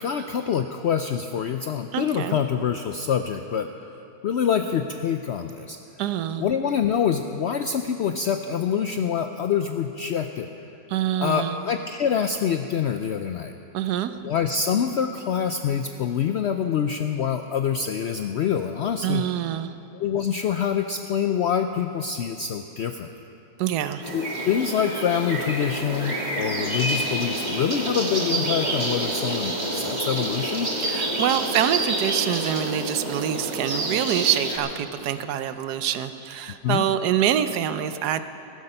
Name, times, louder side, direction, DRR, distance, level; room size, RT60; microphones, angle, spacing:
voice 1, 0.0-3.7 4.2-5.8 6.4-10.7 11.2-13.5 14.2-19.2 19.9-23.1 24.1-30.7 36.6-36.9, left 8 dB, 75° left, 7 dB, 0.6 m, -25 dB
voice 2, 1.9-2.4 6.0-6.5 10.9-11.6 13.7-14.2 19.0-19.7 23.6-24.1 30.8-38.2, right 10 dB, 90° right, 11 dB, 1.2 m, -25 dB
sound 1, 24.0-34.6, right 1 dB, 30° right, 1.6 m, -28 dB
15.0 x 13.5 x 5.5 m, 3.0 s
omnidirectional pair, 1.7 m